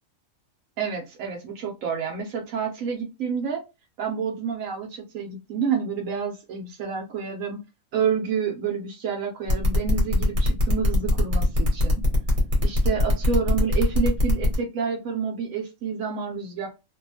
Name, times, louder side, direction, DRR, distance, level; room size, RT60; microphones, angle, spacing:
voice 1, 0.8-3.6 4.0-7.6 7.9-12.0 12.6-16.7, right 6 dB, 85° right, 1.0 m, -29 dB
sound 1, 9.5-14.5, left 2 dB, 40° right, 1.1 m, -22 dB
2.7 x 2.2 x 2.6 m
omnidirectional pair, 1.4 m